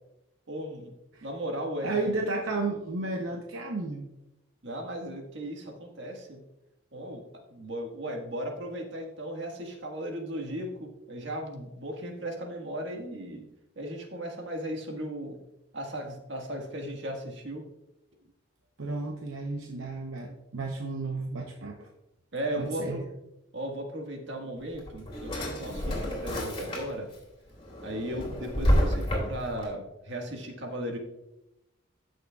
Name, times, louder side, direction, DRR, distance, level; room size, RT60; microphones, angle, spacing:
voice 1, 0.5-0.9 1.2-1.9 4.6-6.4 6.9-7.2 7.5-13.5 13.7-15.3 15.7-17.6 22.3-23.0 23.5-27.1 27.8-31.0, right 1 dB, 65° right, 1 dB, 1.6 m, -36 dB
voice 2, 1.8-4.1 18.8-21.9 22.6-23.0, right 3 dB, 85° right, 2 dB, 0.8 m, -33 dB
Drawer open or close, 24.6-27.2 27.6-29.6, equal, 25° left, 2.5 m, -29 dB
14.0 x 6.5 x 2.4 m, 0.90 s
head